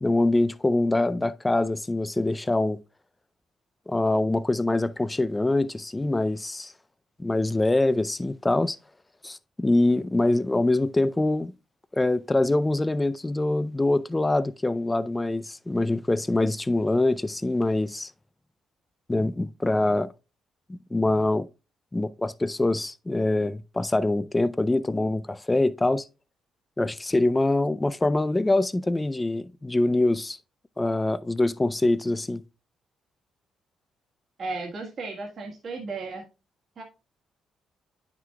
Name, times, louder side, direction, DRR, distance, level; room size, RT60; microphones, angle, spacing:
voice 1, 0.0-2.8 3.9-6.7 7.2-8.8 9.2-11.5 11.9-18.1 19.1-20.1 20.7-21.5 21.9-26.1 26.8-30.4 30.8-32.4, left 2 dB, 15° left, 0.4 m, -24 dB
voice 2, 34.4-36.2 36.8-36.9, right 3 dB, 50° right, 1.6 m, -34 dB
9.4 x 5.9 x 2.2 m
cardioid pair, 90°, 0 cm